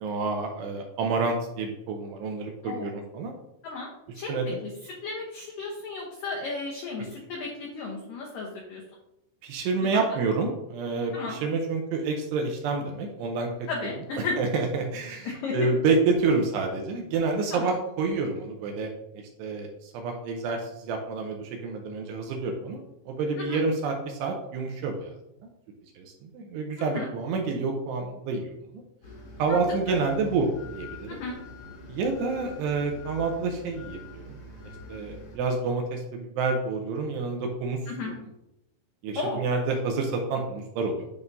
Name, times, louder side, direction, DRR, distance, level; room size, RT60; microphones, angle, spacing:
voice 1, 0.0-3.3 4.3-4.6 9.4-13.5 13.8-13.9 14.4-18.9 19.4-25.2 26.0-28.5 29.4-31.2 31.9-34.4 34.9-37.8 38.0-38.1 39.0-41.1, right 4 dB, 80° right, 3 dB, 2.6 m, -28 dB
voice 2, 4.1-4.7 5.0-8.8 9.8-10.2 11.1-11.4 13.7-14.4 15.2-15.7 17.5-17.7 23.4-23.6 26.8-27.1 29.5-29.6 29.9-30.0 31.1-31.4 37.9-38.2 39.2-39.4, left 3 dB, 80° left, -2 dB, 1.9 m, -34 dB
sound 1, 29.0-35.4, left 2 dB, 60° left, 1.6 m, -44 dB
10.5 x 3.6 x 2.7 m, 0.85 s
omnidirectional pair, 5.3 m